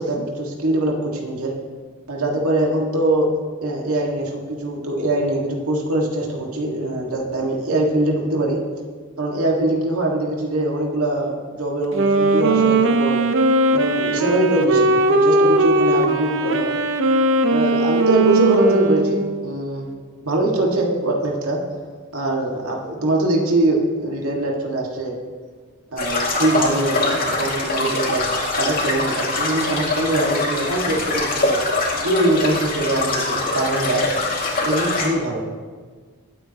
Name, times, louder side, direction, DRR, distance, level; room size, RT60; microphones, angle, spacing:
voice 1, 0.0-1.5 2.1-3.4 3.6-8.6 9.2-13.2 13.7-16.8 17.5-19.9 20.2-21.6 22.1-25.2 25.9-28.2 28.5-31.6 32.0-34.1 34.6-35.4, right 1 dB, 85° right, -1 dB, 2.0 m, -22 dB
Wind instrument woodwind instrument, 11.8-19.5, right 2 dB, 65° right, 0.9 m, -18 dB
sound 1, 26.0-35.1, left 2 dB, 45° left, 2.4 m, -23 dB
23.0 x 8.6 x 3.0 m, 1.5 s
head